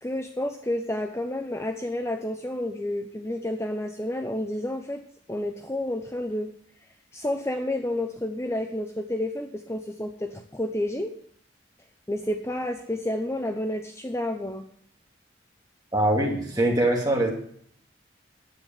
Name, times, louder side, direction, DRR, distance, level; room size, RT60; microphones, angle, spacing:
voice 1, 0.0-5.0 5.3-6.5 7.1-11.1 12.1-14.6, left 1 dB, 15° left, 5 dB, 0.7 m, -30 dB
voice 2, 15.9-17.3, right 1 dB, 20° right, -2 dB, 2.8 m, -22 dB
9.9 x 8.5 x 7.2 m, 0.65 s
head